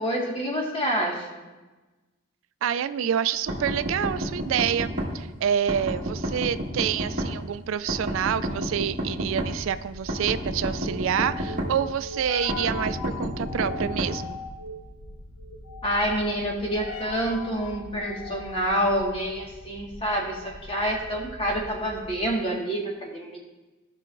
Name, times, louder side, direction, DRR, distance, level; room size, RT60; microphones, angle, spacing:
voice 1, 0.0-1.4 15.8-23.4, equal, 25° left, -2 dB, 1.6 m, -27 dB
voice 2, 2.6-14.4, right 9 dB, 65° right, 13 dB, 0.3 m, -27 dB
sound 1, 3.5-5.1 5.7-7.3 7.9-9.5 10.1-11.7 12.5-14.1, equal, 40° right, 1.7 m, -29 dB
sound 2, 9.1-22.4, left 2 dB, 75° left, 0.9 m, -40 dB
16.0 x 5.7 x 2.6 m, 1.2 s
head